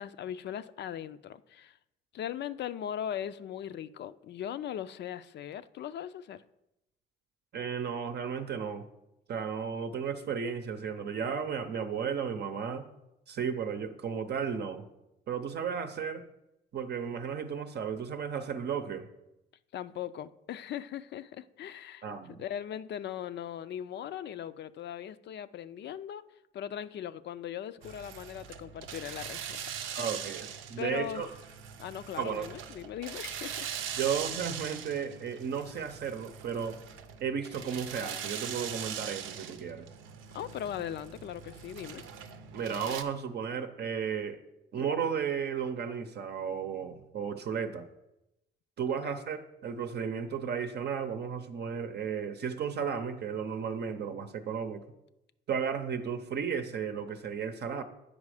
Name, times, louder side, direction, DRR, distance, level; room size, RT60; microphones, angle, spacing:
voice 1, 0.0-1.8 2.1-6.4 19.7-22.1 22.4-26.2 26.5-29.6 29.9-30.1 30.8-31.2 31.8-33.7 40.3-42.0 49.0-49.1, left 10 dB, 60° left, 0.4 m, -39 dB
voice 2, 7.5-8.9 9.3-12.9 13.3-14.8 15.3-16.2 16.7-19.1 22.0-22.4 29.9-31.3 32.2-32.5 34.0-36.8 37.2-39.9 42.5-44.4 44.7-47.8 48.8-54.8 55.5-57.8, right 7 dB, 55° right, 0.7 m, -34 dB
sound 1, 27.8-43.0, right 8 dB, 90° right, 0.7 m, -41 dB
8.4 x 5.1 x 4.9 m
cardioid pair, 90°, 20 cm